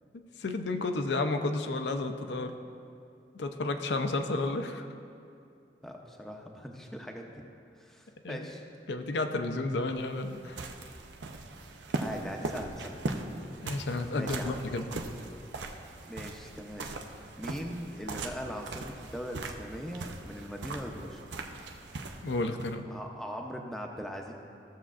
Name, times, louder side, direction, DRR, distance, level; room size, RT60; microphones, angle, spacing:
voice 1, 0.1-2.6 3.3-4.9 8.2-8.5 8.9-10.6 13.6-15.0 22.2-22.8, left 2 dB, 75° left, 6 dB, 0.6 m, -32 dB
voice 2, 5.8-7.5 7.8-8.6 12.0-13.0 14.1-14.6 16.1-16.9 17.4-21.2 22.8-24.3, equal, ahead, 1 dB, 0.6 m, -40 dB
sound 1, 9.8-22.8, right 2 dB, 85° right, 0.6 m, -40 dB
15.0 x 6.9 x 2.4 m, 2.5 s
head